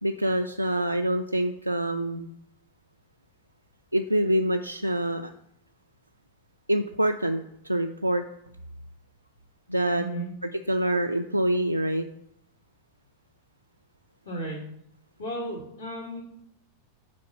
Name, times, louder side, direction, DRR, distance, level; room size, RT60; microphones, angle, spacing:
voice 1, 0.0-2.3 3.9-5.3 6.7-8.2 9.7-10.1 10.4-12.1, right 1 dB, 85° right, 4 dB, 0.4 m, -26 dB
voice 2, 10.0-10.3 14.2-14.6 15.2-16.2, right 1 dB, 70° left, -8 dB, 2.7 m, -34 dB
8.6 x 4.3 x 6.6 m, 0.73 s
figure-of-eight pair, 90°, 0 cm